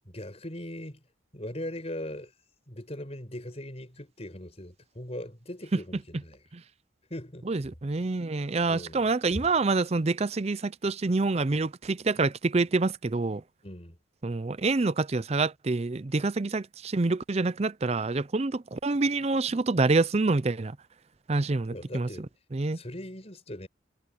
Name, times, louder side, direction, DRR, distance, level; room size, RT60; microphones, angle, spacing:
voice 1, 0.1-1.0 1.3-2.3 2.7-6.4 7.1-7.5 8.7-9.1 13.6-14.0 21.7-22.3 22.7-23.7, left 1 dB, 30° left, 5.3 m, -40 dB
voice 2, 7.5-13.4 14.2-20.8 21.3-22.1 22.5-22.8, right 3 dB, 30° right, 0.5 m, -27 dB
head